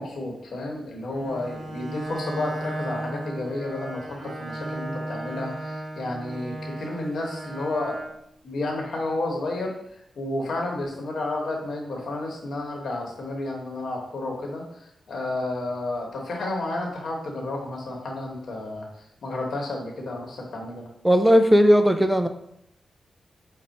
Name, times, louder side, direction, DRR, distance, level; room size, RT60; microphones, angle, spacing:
voice 1, 0.0-8.0 8.4-14.6 15.1-18.9 19.2-20.9, left 2 dB, 70° left, 0 dB, 1.1 m, -31 dB
Bowed string instrument, 1.1-8.2, right 1 dB, 55° right, 1.1 m, -35 dB
voice 2, 21.0-22.3, equal, 5° right, 8 dB, 0.3 m, -17 dB
5.4 x 2.1 x 4.1 m, 0.78 s
cardioid pair, 75°, 0 cm